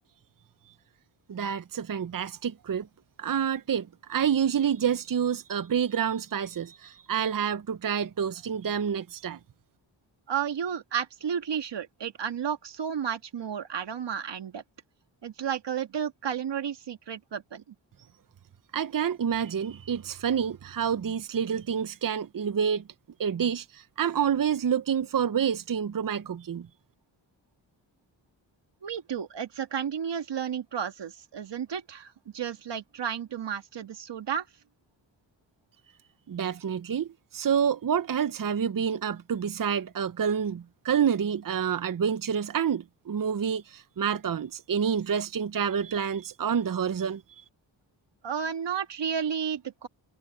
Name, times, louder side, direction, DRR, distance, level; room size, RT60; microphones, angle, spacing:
voice 1, 1.3-2.9 3.2-9.4 18.7-22.8 23.2-26.7 36.3-47.4, right 8 dB, 45° right, 0.9 m, -28 dB
voice 2, 10.3-14.6 15.2-17.6 28.8-34.5 48.2-49.9, right 8 dB, 65° right, 2.1 m, -32 dB
supercardioid pair, 50°, 45 cm